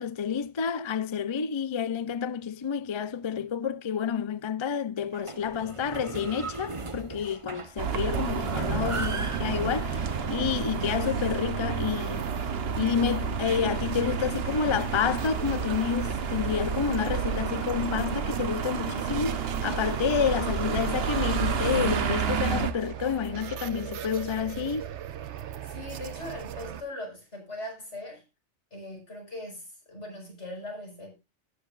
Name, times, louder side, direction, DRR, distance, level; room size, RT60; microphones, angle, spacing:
voice 1, 0.0-12.3 12.8-24.9, left 7 dB, 40° left, 0.4 m, -29 dB
sound 1, 5.1-11.4, right 3 dB, 30° right, 1.0 m, -37 dB
sound 2, 7.8-22.7, right 6 dB, 60° right, 1.1 m, -30 dB
voice 2, 10.7-11.1 25.4-28.2 28.7-31.1, left 1 dB, 75° left, 5.7 m, -40 dB
sound 3, 12.2-26.8, right 11 dB, 80° right, 1.0 m, -39 dB
19.0 x 7.2 x 2.4 m
omnidirectional pair, 1.2 m